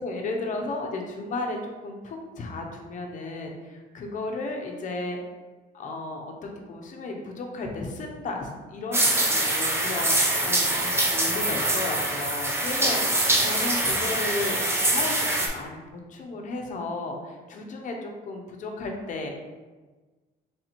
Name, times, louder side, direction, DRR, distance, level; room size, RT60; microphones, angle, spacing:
voice 1, 0.0-5.2 5.7-19.3, left 2 dB, 50° left, 2 dB, 0.8 m, -34 dB
sound 1, 8.9-15.5, right 1 dB, 15° right, 0.6 m, -24 dB
3.5 x 2.7 x 4.3 m, 1.3 s
cardioid pair, 110°, 17 cm